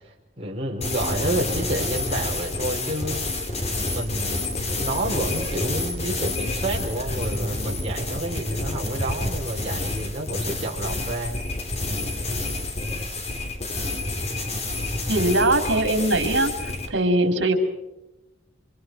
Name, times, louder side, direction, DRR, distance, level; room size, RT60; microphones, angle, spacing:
voice 1, 0.4-3.3 3.9-11.4, right 1 dB, 30° right, -2 dB, 4.7 m, -29 dB
sound 1, 0.8-16.9, left 2 dB, 35° left, 3.1 m, -28 dB
voice 2, 15.1-16.5 16.9-17.5, right 2 dB, 65° right, 5 dB, 4.5 m, -21 dB
29.5 x 27.5 x 4.9 m, 0.96 s
head